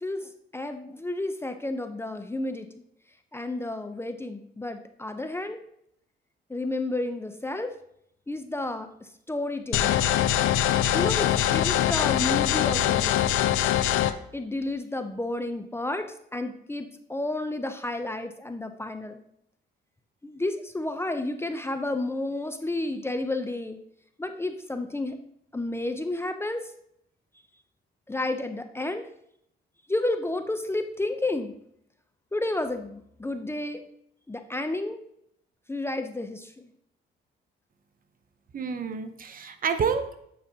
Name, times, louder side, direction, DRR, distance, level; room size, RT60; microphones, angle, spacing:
voice 1, 0.0-2.7 3.3-5.6 6.5-7.7 8.3-8.9 9.3-10.0 10.9-13.4 14.3-16.1 16.3-19.2 20.2-23.8 24.2-25.2 25.5-26.6 28.1-29.1 29.9-31.5 32.3-33.8 34.3-35.0 35.7-36.7, left 2 dB, 10° left, 7 dB, 0.6 m, -31 dB
sound 1, 9.7-14.1, left 11 dB, 85° left, 0.5 m, -23 dB
voice 2, 38.5-40.2, right 6 dB, 45° right, 8 dB, 0.8 m, -29 dB
8.9 x 5.0 x 2.8 m, 0.72 s
cardioid pair, 90°, 20 cm